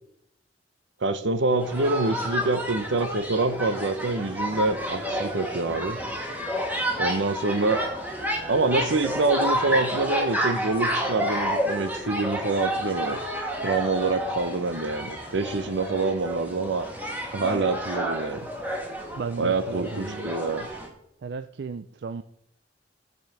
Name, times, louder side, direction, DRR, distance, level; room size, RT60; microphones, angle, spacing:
voice 1, 1.0-6.0 7.0-7.8 8.5-13.2 13.6-16.9 17.3-18.5 19.4-20.7, right 3 dB, 85° right, 12 dB, 0.9 m, -26 dB
sound 1, 1.6-20.9, equal, 10° right, 1.7 m, -30 dB
voice 2, 19.2-20.3 21.2-22.2, right 5 dB, 65° right, 11 dB, 0.4 m, -35 dB
12.0 x 5.5 x 6.3 m, 0.74 s
head